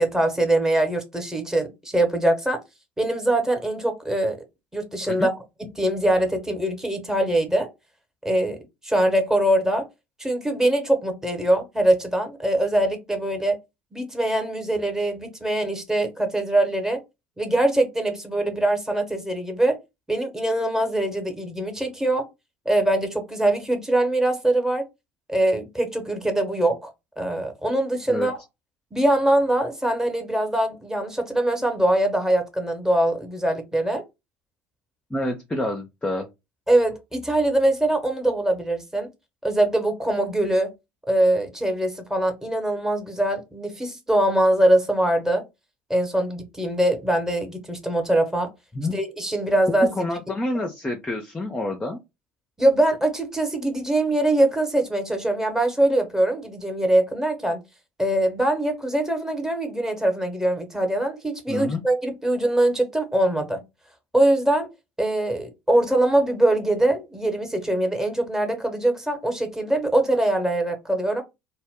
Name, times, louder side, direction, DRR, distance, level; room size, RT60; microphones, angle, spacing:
voice 1, 0.0-2.6 3.0-4.4 4.7-5.3 5.8-7.7 8.2-8.6 8.8-9.8 10.2-13.6 13.9-17.0 17.4-19.8 20.1-22.3 22.6-24.8 25.3-26.9 27.2-28.4 28.9-34.0 36.7-39.1 39.4-40.7 41.1-45.4 45.9-48.5 48.9-49.9 52.6-57.6 58.0-63.6 64.1-64.7 65.0-71.2, right 1 dB, 10° right, 0.9 m, -22 dB
voice 2, 35.1-36.3 48.7-49.0 49.7-52.0 61.5-61.8, left 1 dB, 15° left, 0.5 m, -28 dB
2.1 x 2.1 x 3.5 m
hypercardioid pair, 65°, 6 cm